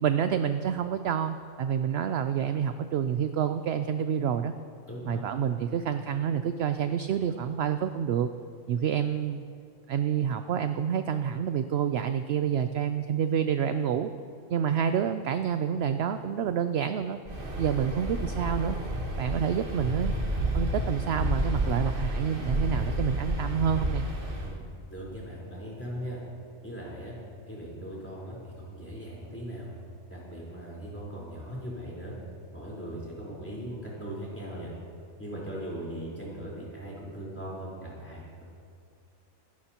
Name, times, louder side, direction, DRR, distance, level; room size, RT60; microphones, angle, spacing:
voice 1, 0.0-4.5 5.1-8.3 8.7-9.4 9.9-14.1 14.5-17.2 17.6-18.8 19.2-20.1 20.5-24.1, right 8 dB, 65° right, 9 dB, 0.7 m, -28 dB
voice 2, 4.9-5.2 24.4-24.6 24.9-26.2 26.6-27.2 27.5-29.7 30.1-32.1 32.5-34.7 35.2-38.4, equal, 10° left, -6 dB, 4.1 m, -39 dB
Waves surf, 17.2-24.6, right 1 dB, 45° right, 1.6 m, -30 dB
25.5 x 12.5 x 2.9 m, 2.3 s
omnidirectional pair, 1.3 m